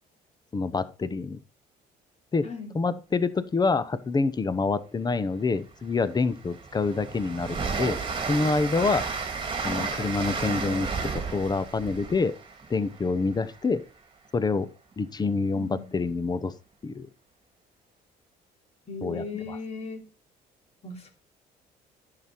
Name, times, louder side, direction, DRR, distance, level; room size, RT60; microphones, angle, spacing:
voice 1, 0.5-1.4 2.3-2.5 2.7-8.0 8.3-9.0 9.6-12.3 12.7-13.8 14.3-14.7 15.0-16.5 16.8-17.1 19.0-19.6, left 4 dB, 25° left, 15 dB, 0.9 m, -27 dB
voice 2, 2.4-3.0 9.6-10.0 15.5-15.9 18.9-20.0 20.8-21.1, left 4 dB, 40° left, 4 dB, 3.0 m, -38 dB
Train, 5.4-5.5 5.9-13.7, right 5 dB, 30° right, 1.9 m, -33 dB
10.5 x 6.9 x 4.5 m, 0.33 s
cardioid pair, 110°, 17 cm